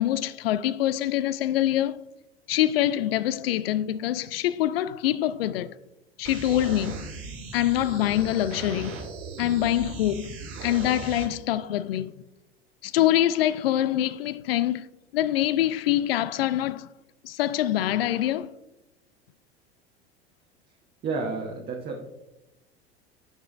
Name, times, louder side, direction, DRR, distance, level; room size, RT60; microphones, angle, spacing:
voice 1, 0.0-2.0 2.5-5.7 6.2-7.1 7.5-9.0 9.4-10.4 10.6-12.2 12.8-14.9 15.1-16.9 17.2-18.5, left 13 dB, 65° left, 0.5 m, -25 dB
sound 1, 6.2-11.2, right 4 dB, 50° right, 2.3 m, -38 dB
voice 2, 21.0-22.1, right 4 dB, 30° right, 1.1 m, -31 dB
13.5 x 4.9 x 2.4 m
figure-of-eight pair, 75°, 32 cm